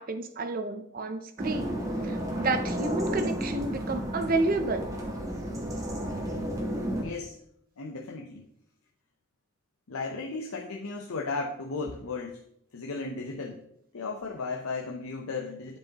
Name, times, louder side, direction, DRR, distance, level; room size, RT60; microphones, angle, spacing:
voice 1, 0.0-4.9, right 3 dB, 40° right, 9 dB, 0.5 m, -31 dB
sound 1, 1.4-7.0, equal, 15° right, 0.9 m, -32 dB
voice 2, 7.0-7.4 7.8-8.5 9.9-12.4 12.7-13.6 13.9-15.8, left 3 dB, 80° left, 1 dB, 0.6 m, -35 dB
10.5 x 4.7 x 2.9 m, 0.73 s
head